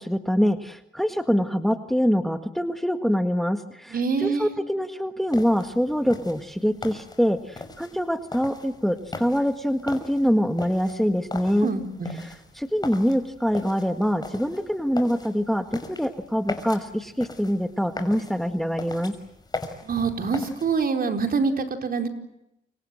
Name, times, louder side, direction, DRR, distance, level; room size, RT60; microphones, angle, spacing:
voice 1, 0.0-11.7 12.2-19.1, equal, ahead, 8 dB, 1.7 m, -24 dB
voice 2, 3.9-4.5 11.6-12.2 19.8-22.1, right 5 dB, 50° right, 5 dB, 4.6 m, -25 dB
sound 1, 5.3-20.8, left 3 dB, 20° left, 5.6 m, -39 dB
29.5 x 26.0 x 7.8 m, 0.85 s
cardioid pair, 90°, 20 cm